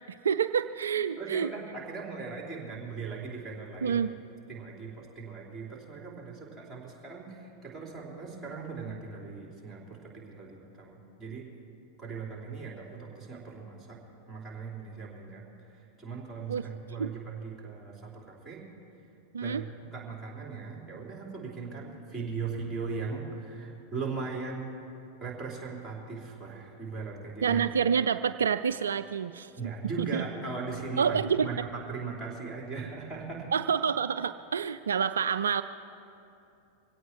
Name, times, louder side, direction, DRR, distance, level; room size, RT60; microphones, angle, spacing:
voice 1, 0.2-1.5 3.8-4.1 16.5-16.7 17.0-17.1 19.3-19.6 27.4-29.5 30.0-30.2 31.0-31.5 33.5-35.6, right 7 dB, 65° right, 12 dB, 0.3 m, -28 dB
voice 2, 1.2-4.0 4.5-11.4 12.0-14.0 14.3-15.4 16.0-18.6 19.4-19.6 19.9-24.7 25.2-27.6 29.6-33.5, right 4 dB, 5° right, -4 dB, 4.0 m, -39 dB
24.0 x 17.0 x 3.1 m, 2.8 s
figure-of-eight pair, 90°, 0 cm